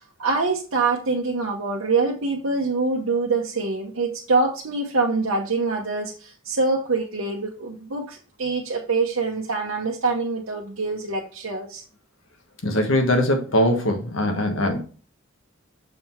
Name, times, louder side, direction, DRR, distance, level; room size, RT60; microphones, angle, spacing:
voice 1, 0.2-11.8, right 3 dB, 90° right, -2 dB, 1.1 m, -25 dB
voice 2, 12.6-14.8, left 1 dB, 75° left, 4 dB, 1.4 m, -21 dB
6.8 x 3.9 x 4.4 m, 0.37 s
head